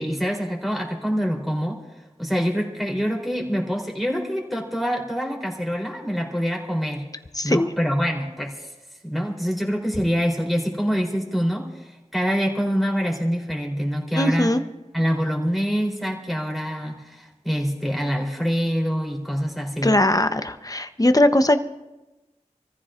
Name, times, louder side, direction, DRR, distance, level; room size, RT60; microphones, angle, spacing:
voice 1, 0.0-1.8 2.2-7.1 7.4-8.7 9.0-14.5 14.9-19.9, equal, ahead, 0 dB, 3.4 m, -25 dB
voice 2, 7.3-7.7 14.2-14.6 19.8-21.6, left 1 dB, 30° left, 9 dB, 0.8 m, -19 dB
28.0 x 14.5 x 2.5 m, 1.0 s
wide cardioid pair, 45°, 13 cm